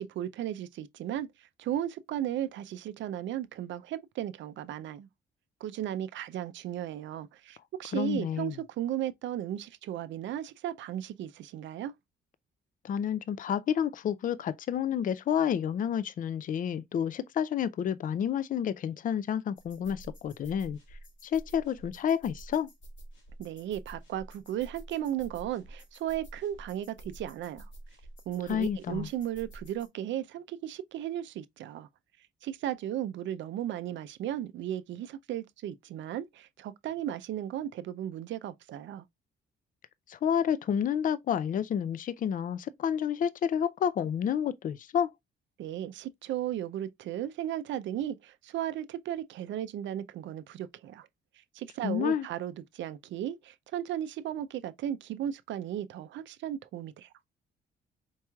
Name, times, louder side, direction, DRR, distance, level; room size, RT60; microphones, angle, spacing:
voice 1, 0.0-5.1 5.6-11.9 23.4-27.7 28.3-31.9 32.4-39.0 45.6-51.1 51.5-57.1, right 11 dB, 70° right, 0.4 m, -35 dB
voice 2, 7.9-8.6 12.8-20.8 21.2-22.7 28.5-29.1 40.1-45.1 51.8-52.3, left 8 dB, 45° left, 0.4 m, -30 dB
sound 1, 19.6-29.9, right 1 dB, 70° left, 1.7 m, -49 dB
4.5 x 3.0 x 2.2 m
cardioid pair, 90°, 20 cm